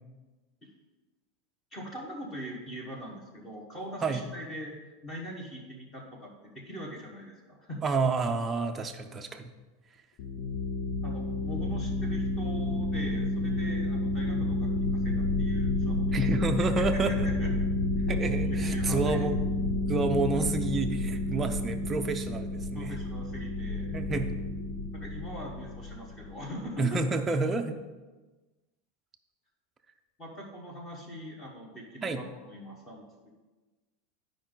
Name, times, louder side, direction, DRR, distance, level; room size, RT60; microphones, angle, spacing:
voice 1, 1.7-7.8 11.0-16.2 16.6-17.5 18.0-18.1 18.4-19.2 22.7-23.9 24.9-27.0 30.2-33.0, equal, 15° left, -1 dB, 1.3 m, -42 dB
voice 2, 7.8-9.5 16.1-17.3 18.1-19.4 19.9-22.9 23.9-24.3 26.8-27.8 32.0-32.2, right 3 dB, 15° right, 5 dB, 0.5 m, -29 dB
sound 1, 10.2-26.4, left 2 dB, 35° left, 0.7 m, -30 dB
11.0 x 5.1 x 3.9 m, 1.2 s
supercardioid pair, 180°, 0 cm